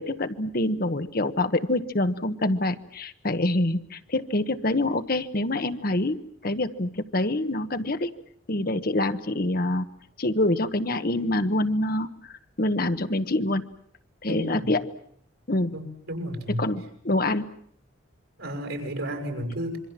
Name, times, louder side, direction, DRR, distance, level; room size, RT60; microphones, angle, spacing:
voice 1, 0.0-6.2 6.4-8.1 8.5-9.9 10.2-12.1 12.6-13.6 14.2-14.9 15.5-15.7 16.6-17.4, left 1 dB, 45° left, 10 dB, 1.2 m, -26 dB
voice 2, 14.2-14.7 15.7-16.6 18.4-19.8, equal, 90° right, 5 dB, 6.2 m, -32 dB
26.5 x 24.0 x 7.5 m, 0.65 s
head